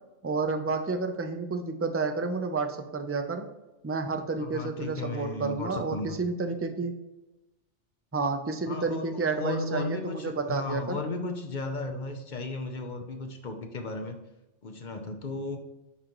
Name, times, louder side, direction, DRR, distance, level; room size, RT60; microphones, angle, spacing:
voice 1, 0.2-3.5 3.8-6.9 8.1-11.0, right 4 dB, 25° right, 6 dB, 0.3 m, -30 dB
voice 2, 4.4-6.2 8.6-14.2 14.6-15.6, left 3 dB, 45° left, 5 dB, 0.8 m, -35 dB
9.8 x 3.8 x 3.0 m, 1.0 s
omnidirectional pair, 1.2 m